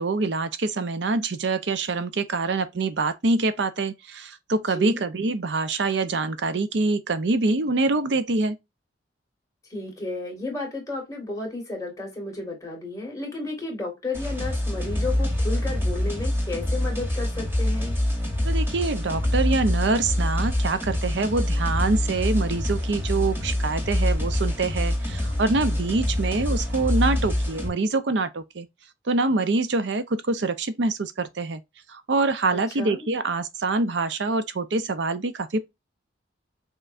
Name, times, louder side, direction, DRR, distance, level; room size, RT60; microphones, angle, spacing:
voice 1, 0.0-8.6 18.4-28.7 29.1-31.6 31.9-35.6, right 3 dB, 70° right, 0.6 m, -25 dB
voice 2, 4.7-5.0 9.7-17.9 32.5-33.1, left 2 dB, 20° left, 1.9 m, -33 dB
sound 1, 14.1-27.7, left 1 dB, 15° right, 2.2 m, -25 dB
5.5 x 3.1 x 2.5 m
head